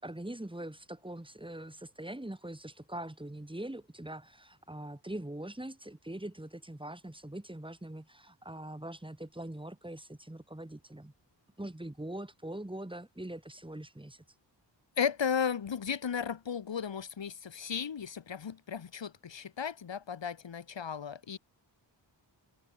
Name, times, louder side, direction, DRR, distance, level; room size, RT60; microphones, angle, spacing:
voice 1, 0.0-11.1 11.6-14.2, right 1 dB, 10° right, 4.2 m, -42 dB
voice 2, 15.0-21.4, left 7 dB, 75° left, 2.1 m, -35 dB
wide cardioid pair, 110°, 44 cm